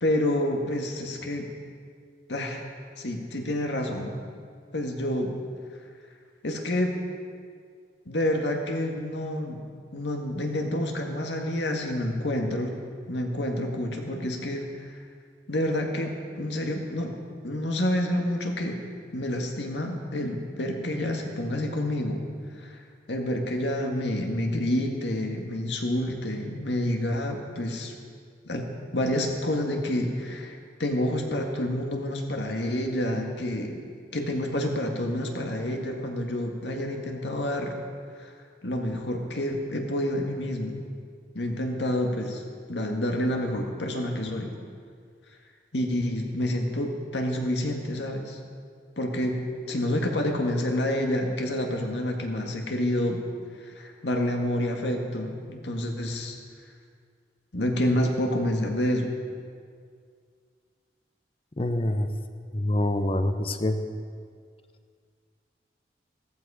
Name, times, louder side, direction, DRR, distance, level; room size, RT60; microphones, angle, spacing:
voice 1, 0.0-1.5 2.3-2.7 3.0-4.2 4.7-5.3 6.4-7.0 8.1-9.6 9.9-12.7 13.1-14.9 15.5-17.1 17.4-18.8 19.1-22.2 22.6-22.8 23.1-27.9 28.5-33.8 34.1-37.8 38.2-38.3 38.6-40.8 41.3-42.4 42.7-44.5 45.7-48.4 49.0-49.4 49.7-53.2 53.6-56.4 57.5-59.1, left 1 dB, 80° left, 2 dB, 1.9 m, -28 dB
voice 2, 61.6-62.1 62.5-63.8, left 1 dB, 30° left, 8 dB, 0.8 m, -26 dB
16.0 x 14.0 x 5.0 m, 2.1 s
head